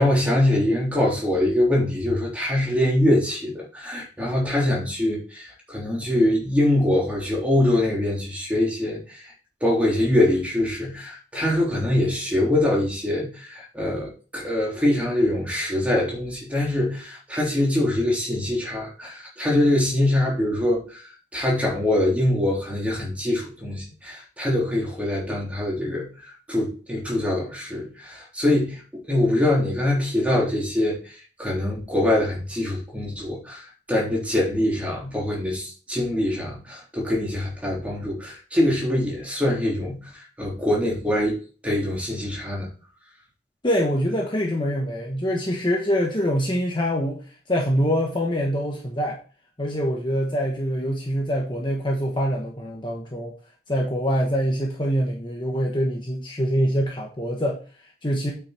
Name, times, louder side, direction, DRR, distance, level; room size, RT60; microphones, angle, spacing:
voice 1, 0.0-9.3 9.6-21.1 21.3-40.0 40.4-41.4 41.6-42.7, left 1 dB, 5° right, -4 dB, 3.4 m, -23 dB
voice 2, 43.6-49.2 49.6-53.3 53.7-58.3, equal, 25° left, 0 dB, 1.2 m, -25 dB
9.0 x 6.0 x 4.4 m, 0.38 s
head